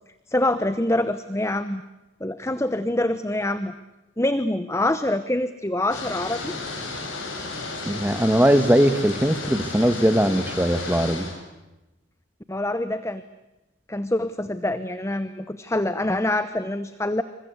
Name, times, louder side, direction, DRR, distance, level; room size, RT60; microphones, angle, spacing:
voice 1, 0.3-1.8 2.2-3.7 4.2-6.5 12.5-13.2 13.9-17.2, left 1 dB, 15° left, 13 dB, 0.9 m, -25 dB
sound 1, 5.9-11.4, left 3 dB, 85° left, 7.6 m, -33 dB
voice 2, 7.8-11.3, equal, 10° right, 10 dB, 1.7 m, -20 dB
27.5 x 25.0 x 8.2 m, 1.0 s
head